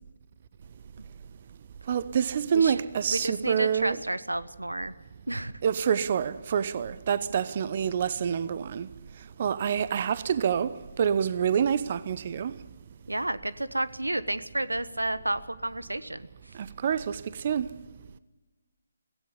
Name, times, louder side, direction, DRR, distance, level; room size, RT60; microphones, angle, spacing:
voice 1, 1.9-4.0 5.6-8.9 9.4-12.6 16.5-17.8, right 7 dB, 40° right, 0.8 m, -27 dB
voice 2, 3.1-4.9 5.3-5.5 7.5-7.6 13.1-16.3, right 1 dB, 90° right, 1.1 m, -31 dB
16.5 x 16.0 x 9.9 m
figure-of-eight pair, 150°, 0 cm